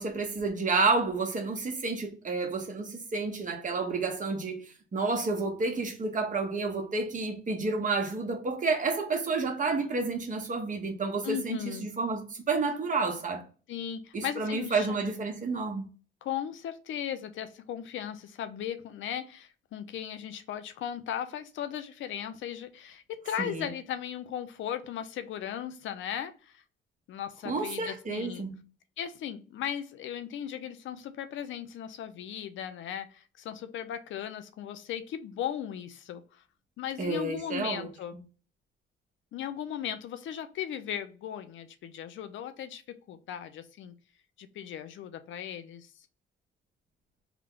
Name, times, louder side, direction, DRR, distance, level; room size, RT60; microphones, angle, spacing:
voice 1, 0.0-13.4 14.1-15.9 23.4-23.7 27.4-28.5 37.0-37.9, right 3 dB, 40° right, 1.2 m, -30 dB
voice 2, 11.2-11.9 13.7-15.0 16.2-26.6 27.1-28.4 29.0-36.4 36.8-38.1 39.3-43.9 44.4-45.9, left 9 dB, 75° left, 0.6 m, -37 dB
3.5 x 2.2 x 3.7 m
cardioid pair, 90°, 20 cm